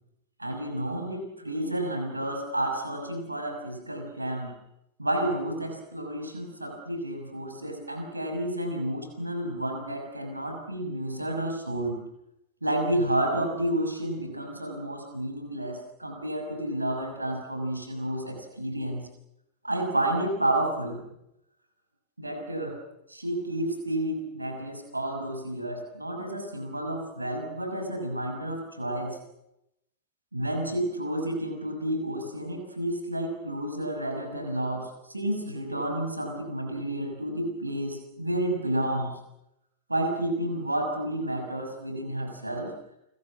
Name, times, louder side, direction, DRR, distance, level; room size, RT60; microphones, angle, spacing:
voice 1, 0.4-4.6 5.0-12.0 12.6-19.0 19.6-21.0 22.2-22.8 23.1-29.2 30.3-39.1 39.9-42.7, right 1 dB, 85° right, 4 dB, 6.0 m, -30 dB
29.5 x 22.5 x 7.4 m, 0.85 s
figure-of-eight pair, 90°, 0 cm